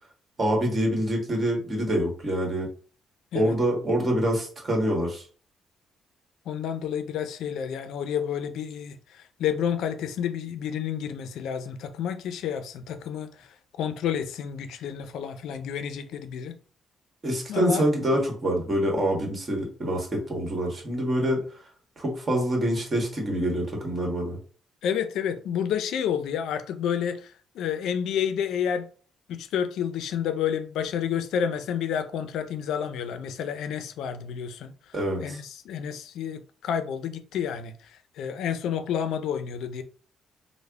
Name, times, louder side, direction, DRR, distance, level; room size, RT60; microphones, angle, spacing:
voice 1, 0.4-2.7 3.3-5.2 17.2-21.4 22.0-24.4 34.9-35.4, right 1 dB, 35° right, 1.4 m, -26 dB
voice 2, 6.5-13.5 13.8-16.6 17.5-17.9 24.8-28.9 29.3-34.7 35.2-39.8, left 8 dB, 80° left, 0.4 m, -30 dB
3.3 x 2.1 x 3.5 m
cardioid pair, 90°, 0 cm